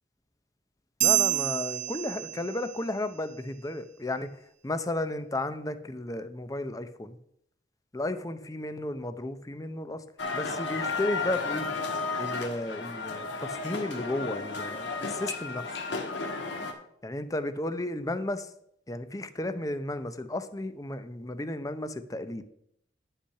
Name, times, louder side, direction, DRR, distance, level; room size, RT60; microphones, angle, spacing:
voice 1, 1.0-4.3 4.6-7.2 7.9-10.0 10.3-11.7 12.2-15.6 17.0-18.5 18.9-22.4, left 1 dB, 20° left, 11 dB, 0.6 m, -33 dB
sound 1, 1.0-2.9, right 13 dB, 45° right, 0.7 m, -27 dB
sound 2, 10.2-16.7, left 4 dB, 80° left, 1.5 m, -33 dB
10.0 x 5.7 x 5.8 m, 0.74 s
head